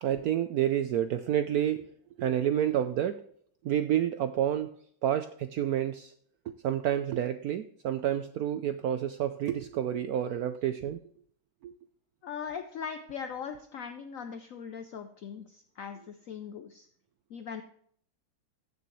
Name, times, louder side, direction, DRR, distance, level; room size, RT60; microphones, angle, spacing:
voice 1, 0.0-1.9 2.2-3.2 3.6-4.7 5.0-6.1 6.5-11.0 11.6-11.7, right 10 dB, 85° right, 10 dB, 0.8 m, -29 dB
voice 2, 12.2-16.9 17.3-17.6, left 7 dB, 70° left, 8 dB, 0.8 m, -40 dB
15.0 x 6.8 x 3.1 m, 0.62 s
omnidirectional pair, 2.2 m